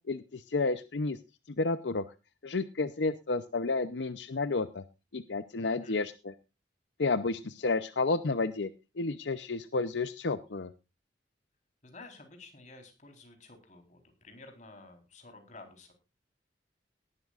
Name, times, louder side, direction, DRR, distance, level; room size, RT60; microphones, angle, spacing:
voice 1, 0.1-1.2 1.5-2.0 2.4-4.8 5.1-6.3 7.0-8.7 9.0-10.7, left 3 dB, 85° left, 12 dB, 0.7 m, -31 dB
voice 2, 5.5-6.0 11.8-15.9, left 3 dB, 45° left, 5 dB, 4.1 m, -52 dB
19.0 x 12.0 x 2.5 m, 0.28 s
head